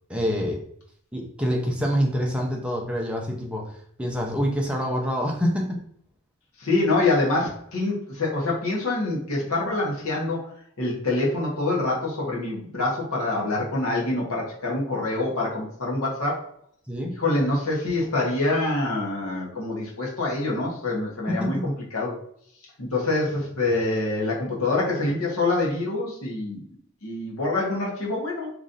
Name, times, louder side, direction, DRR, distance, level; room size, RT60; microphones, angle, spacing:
voice 1, 0.1-0.6 1.1-3.7 4.0-5.8 16.9-17.2 21.3-21.6, equal, 5° right, -1 dB, 0.6 m, -26 dB
voice 2, 6.6-10.5 10.8-16.4 17.2-22.2 22.8-26.6 27.0-28.5, left 2 dB, 85° left, -3 dB, 1.1 m, -25 dB
3.1 x 2.6 x 3.9 m, 0.64 s
head